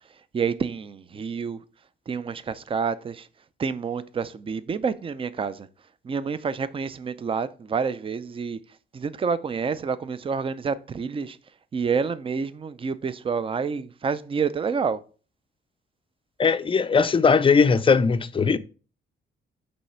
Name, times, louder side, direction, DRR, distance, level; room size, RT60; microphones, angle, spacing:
voice 1, 0.3-1.6 2.1-3.3 3.6-5.7 6.0-8.6 8.9-11.4 11.7-15.0, right 5 dB, 25° right, 0.5 m, -28 dB
voice 2, 16.4-18.6, left 5 dB, 25° left, 0.5 m, -19 dB
5.4 x 3.3 x 5.5 m
cardioid pair, 90°, 20 cm